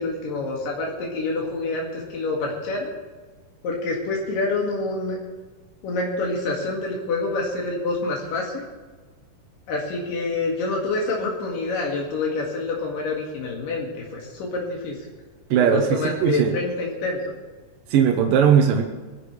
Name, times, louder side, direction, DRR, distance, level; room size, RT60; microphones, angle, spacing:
voice 1, 0.0-2.9 3.6-5.2 5.8-8.6 9.7-15.0 15.6-17.2, left 3 dB, 80° left, -2 dB, 3.9 m, -27 dB
voice 2, 15.5-16.6 17.9-18.8, right 7 dB, 90° right, 3 dB, 2.8 m, -18 dB
23.5 x 11.5 x 3.3 m, 1.4 s
omnidirectional pair, 3.8 m